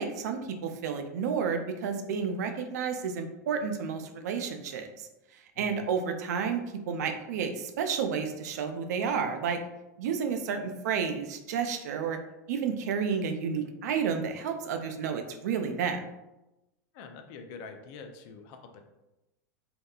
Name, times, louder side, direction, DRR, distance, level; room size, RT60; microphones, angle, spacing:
voice 1, 0.0-6.6 6.9-9.6 10.0-12.2 12.5-16.0, right 6 dB, 75° right, 7 dB, 0.4 m, -31 dB
voice 2, 5.5-5.9 16.9-18.9, left 4 dB, 50° left, 6 dB, 0.4 m, -46 dB
2.7 x 2.2 x 2.3 m, 0.97 s
hypercardioid pair, 115°, 9 cm